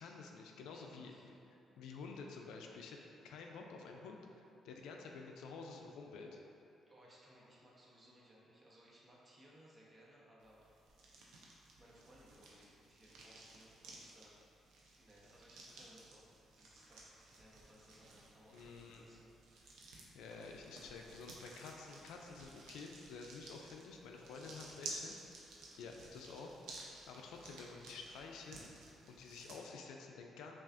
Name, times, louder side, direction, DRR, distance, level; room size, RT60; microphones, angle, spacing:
voice 1, 0.0-1.3 1.8-3.0 3.2-6.4 18.5-19.1 20.1-25.1 25.8-28.6 29.1-30.6, left 4 dB, 90° left, 1 dB, 0.3 m, -50 dB
voice 2, 0.7-1.3 6.9-11.4 11.8-14.3 15.0-19.3 24.2-25.0, equal, 30° right, -5 dB, 0.9 m, -63 dB
sound 1, 10.4-29.6, right 2 dB, 85° right, 0.6 m, -55 dB
5.6 x 2.4 x 2.5 m, 2.7 s
cardioid pair, 90°, 0 cm